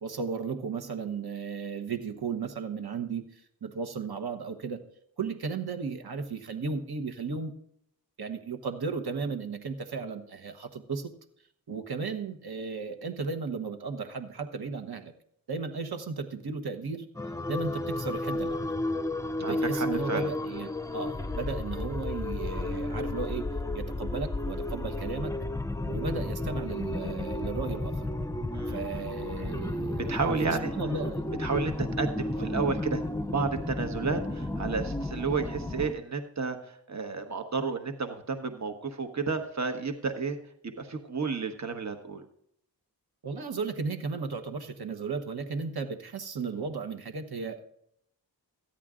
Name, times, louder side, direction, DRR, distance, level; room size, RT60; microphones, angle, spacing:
voice 1, 0.0-4.8 5.2-7.5 8.2-11.1 11.7-15.1 15.5-17.1 17.5-18.7 19.4-23.5 23.7-25.3 25.8-28.1 28.7-30.2 30.5-31.3 32.4-32.5 43.2-47.7, right 5 dB, 60° right, 7 dB, 1.3 m, -35 dB
sound 1, 17.2-36.0, left 2 dB, 10° left, 0.6 m, -32 dB
voice 2, 19.4-20.3 28.5-28.8 29.9-30.7 31.4-33.0 33.3-40.4 40.6-42.2, right 4 dB, 40° right, 6 dB, 1.2 m, -31 dB
13.5 x 10.0 x 3.7 m, 0.70 s
cardioid pair, 50°, 42 cm